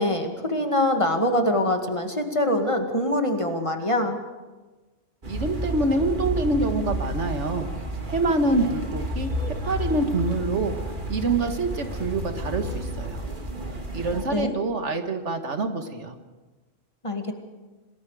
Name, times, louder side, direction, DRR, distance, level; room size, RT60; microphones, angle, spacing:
voice 1, 0.0-4.2 14.3-14.5 17.0-17.3, left 1 dB, 25° left, 4 dB, 2.2 m, -24 dB
sound 1, 5.2-14.2, right 1 dB, 45° right, 2.3 m, -31 dB
voice 2, 5.3-7.7 8.1-9.3 9.6-10.8 11.1-13.2 13.9-16.2, right 2 dB, 75° right, 6 dB, 1.9 m, -26 dB
27.5 x 19.5 x 5.0 m, 1.2 s
omnidirectional pair, 1.2 m